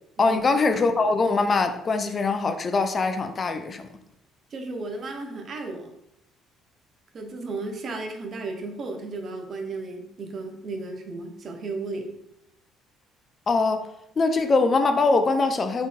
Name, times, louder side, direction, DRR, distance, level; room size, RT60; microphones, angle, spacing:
voice 1, 0.2-3.9 13.5-13.8 14.2-15.9, left 3 dB, 35° left, 7 dB, 0.4 m, -22 dB
voice 2, 4.5-5.9 7.1-12.1, right 3 dB, 45° right, 3 dB, 0.6 m, -34 dB
3.7 x 3.6 x 2.2 m, 0.80 s
figure-of-eight pair, 50°, 0 cm